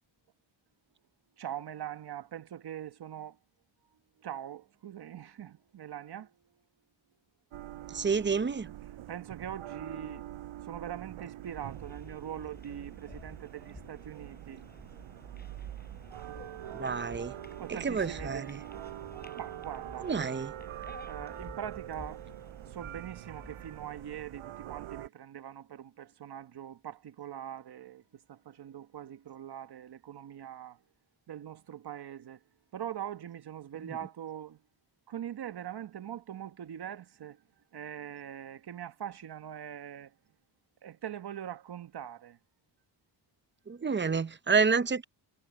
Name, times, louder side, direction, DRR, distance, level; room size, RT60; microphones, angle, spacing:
voice 1, 1.4-3.4 4.2-6.5 8.6-10.3 10.6-14.6 17.6-18.6 19.4-20.1 21.0-22.3 22.6-30.8 31.3-32.4 32.7-34.6 35.1-37.4 37.7-40.1 40.8-42.4, right 10 dB, 55° right, 1.3 m, -42 dB
sound 1, 7.5-25.1, right 13 dB, 85° right, 6.3 m, -44 dB
voice 2, 7.9-8.7 16.7-17.3 17.7-18.6 20.0-20.5 33.9-34.0 43.7-45.0, right 5 dB, 25° right, 0.8 m, -29 dB
sound 2, 11.4-24.0, left 3 dB, 20° left, 4.9 m, -52 dB
cardioid pair, 80°, 48 cm